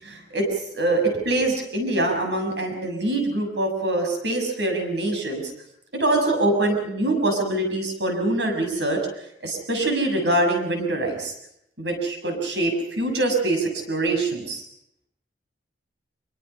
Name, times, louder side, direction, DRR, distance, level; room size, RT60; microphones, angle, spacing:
voice 1, 0.0-5.4 5.9-9.0 9.4-11.3 11.8-14.6, right 2 dB, 65° right, 4 dB, 6.6 m, -24 dB
25.5 x 23.5 x 5.7 m, 0.76 s
head